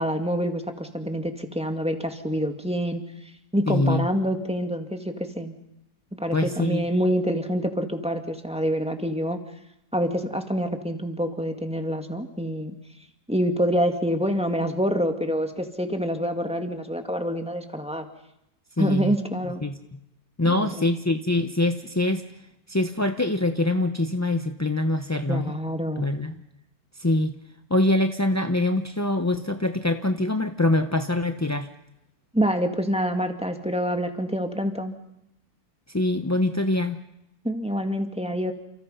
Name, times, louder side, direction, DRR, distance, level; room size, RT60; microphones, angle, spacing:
voice 1, 0.0-3.0 3.5-5.5 6.2-9.4 9.9-12.7 13.3-18.1 18.8-19.6 20.5-20.9 25.3-26.1 32.3-35.0 37.4-38.5, equal, 5° right, 5 dB, 2.0 m, -26 dB
voice 2, 3.7-4.1 6.3-6.8 18.8-19.2 19.6-19.8 20.4-22.2 22.7-25.5 26.0-26.3 27.0-27.3 27.7-31.7 35.9-37.0, left 2 dB, 15° left, 7 dB, 0.6 m, -24 dB
30.0 x 28.5 x 5.6 m, 0.84 s
omnidirectional pair, 1.7 m